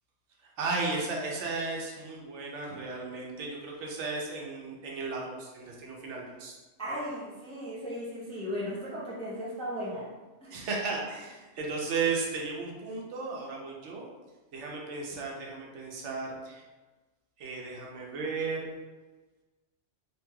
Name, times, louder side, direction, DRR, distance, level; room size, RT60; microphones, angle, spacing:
voice 1, 0.4-6.6 10.5-14.0 14.5-16.6 17.4-18.7, right 4 dB, 80° right, -1 dB, 1.0 m, -35 dB
voice 2, 6.8-10.1 10.4-10.5, equal, 10° left, -7 dB, 0.4 m, -36 dB
3.1 x 2.9 x 2.2 m, 1.2 s
omnidirectional pair, 1.2 m